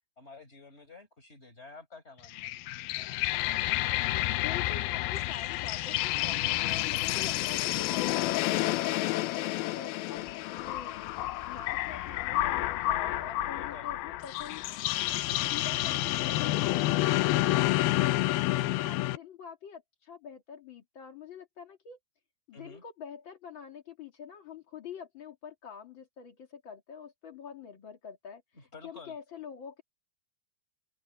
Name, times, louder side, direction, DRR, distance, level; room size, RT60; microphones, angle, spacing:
voice 1, 0.2-2.5 13.5-13.9 18.5-18.8 22.5-22.8 28.5-29.1, left 3 dB, 15° left, 4.8 m, -50 dB
sound 1, 2.2-19.2, left 17 dB, 85° left, 2.1 m, -29 dB
voice 2, 4.2-14.7 15.3-18.2 18.7-22.0 22.5-28.4 28.8-29.8, left 7 dB, 55° left, 1.3 m, -46 dB
open air
omnidirectional pair, 5.3 m